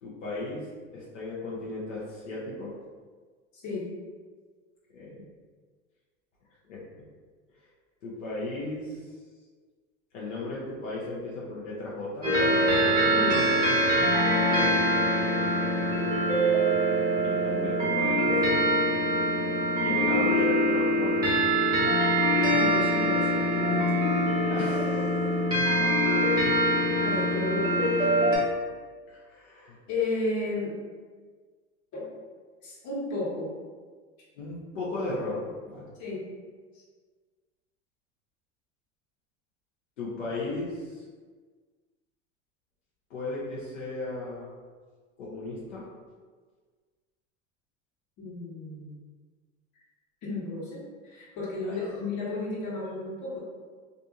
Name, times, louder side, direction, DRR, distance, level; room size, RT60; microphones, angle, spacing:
voice 1, 0.0-0.6 0.9-2.7 4.9-5.2 6.7-6.8 8.0-9.0 10.1-12.3 17.2-18.4 19.8-21.3 24.5-25.3 25.8-25.9 29.1-29.8 34.4-35.9 40.0-41.0 43.1-44.5 45.2-45.8 51.6-52.0, left 2 dB, 85° left, -7 dB, 0.7 m, -35 dB
sound 1, 12.2-28.4, right 1 dB, 10° right, 1.0 m, -24 dB
voice 2, 13.1-13.4 22.5-24.0 27.0-28.0 29.9-30.8 31.9-32.2 32.6-33.5 36.0-36.3 48.2-49.0 50.2-53.4, left 2 dB, 50° left, -6 dB, 1.2 m, -33 dB
2.6 x 2.5 x 2.4 m, 1.5 s
hypercardioid pair, 90°, 36 cm